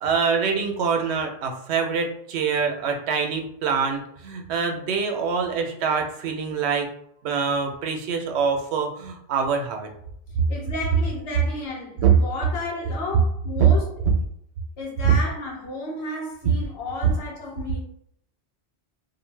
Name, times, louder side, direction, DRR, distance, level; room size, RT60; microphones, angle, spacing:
voice 1, 0.0-6.9 7.2-9.9 12.0-12.1 13.6-13.7 15.0-15.1, right 6 dB, 85° right, 0.8 m, -24 dB
voice 2, 10.5-14.1 14.8-17.8, left 2 dB, 75° left, 1.0 m, -33 dB
2.5 x 2.1 x 3.2 m
omnidirectional pair, 1.1 m